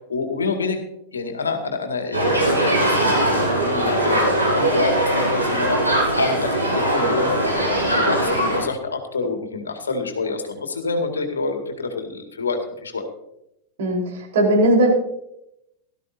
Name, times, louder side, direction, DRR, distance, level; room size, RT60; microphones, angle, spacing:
voice 1, 0.1-0.8 1.1-5.8 6.1-13.1, left 4 dB, 70° left, 5 dB, 2.1 m, -27 dB
sound 1, 2.1-8.6, right 1 dB, 90° right, 6.0 m, -20 dB
voice 2, 13.8-14.9, right 1 dB, 55° right, -1 dB, 4.2 m, -18 dB
17.5 x 13.0 x 2.7 m, 0.82 s
figure-of-eight pair, 90°, 0 cm